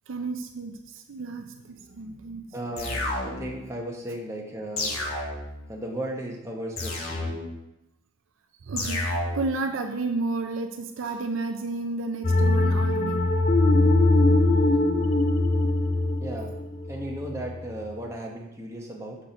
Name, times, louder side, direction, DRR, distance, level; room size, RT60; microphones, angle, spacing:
voice 1, 0.1-2.4 8.6-13.3 14.4-14.5, right 3 dB, 60° right, 6 dB, 0.5 m, -32 dB
voice 2, 2.5-5.0 5.7-7.3 16.2-16.5 16.9-19.2, right 1 dB, 15° right, -2 dB, 1.0 m, -35 dB
sound 1, 2.8-3.7 4.8-5.7 6.8-7.7 8.8-9.6, left 2 dB, 70° left, 1.2 m, -31 dB
sound 2, 12.2-17.5, left 2 dB, 30° left, 0.4 m, -22 dB
6.2 x 4.4 x 5.1 m, 0.91 s
head